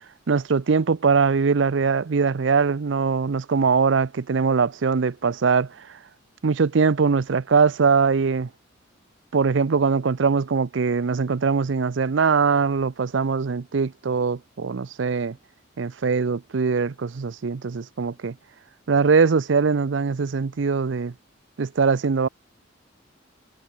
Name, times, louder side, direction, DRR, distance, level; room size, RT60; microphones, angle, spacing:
voice 1, 0.3-5.7 6.4-8.5 9.3-15.4 15.8-18.3 18.9-21.1 21.6-22.3, right 5 dB, 70° right, 0.5 m, -21 dB
head